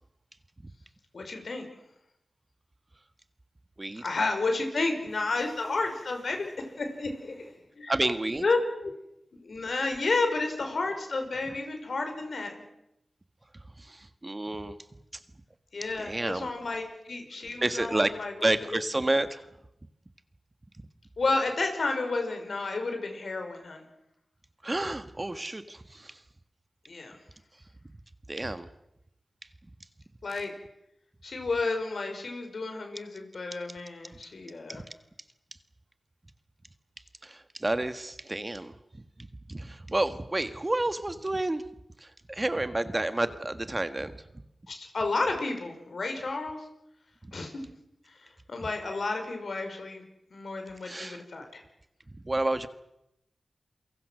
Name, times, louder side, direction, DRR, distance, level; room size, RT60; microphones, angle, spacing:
voice 1, 1.1-1.7 4.0-7.9 8.4-8.9 9.4-12.6 15.7-18.8 21.2-23.9 26.9-27.2 30.2-30.5 31.2-34.8 44.7-46.6 47.3-47.5 48.2-50.0 50.3-51.6, left 3 dB, 70° left, 5 dB, 5.4 m, -31 dB
voice 2, 7.9-8.4 13.5-14.8 16.0-16.5 17.6-19.5 24.6-26.2 28.3-28.7 34.1-34.2 34.7-34.8 37.2-38.8 39.2-41.6 42.0-44.3 47.2-47.4 50.8-51.2 52.2-52.7, right 2 dB, 30° right, 10 dB, 1.7 m, -30 dB
28.5 x 23.5 x 6.4 m, 0.84 s
cardioid pair, 40°, 0 cm